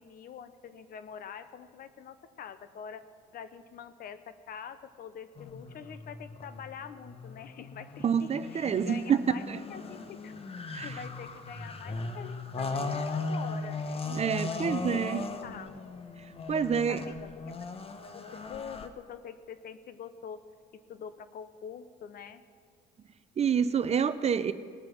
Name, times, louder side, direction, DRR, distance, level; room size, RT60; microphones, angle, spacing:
voice 1, 0.0-3.0 3.3-9.4 9.7-10.3 10.8-15.7 16.5-20.4 20.9-22.4, left 7 dB, 50° left, 12 dB, 0.9 m, -45 dB
sound 1, 5.4-18.9, left 3 dB, 30° left, 1.1 m, -38 dB
voice 2, 8.0-9.2 9.5-9.6 10.7-11.0 14.1-15.3 16.5-17.0 23.4-24.5, right 7 dB, 35° right, 13 dB, 0.6 m, -27 dB
19.0 x 7.6 x 6.0 m, 2.1 s
supercardioid pair, 80°, 19 cm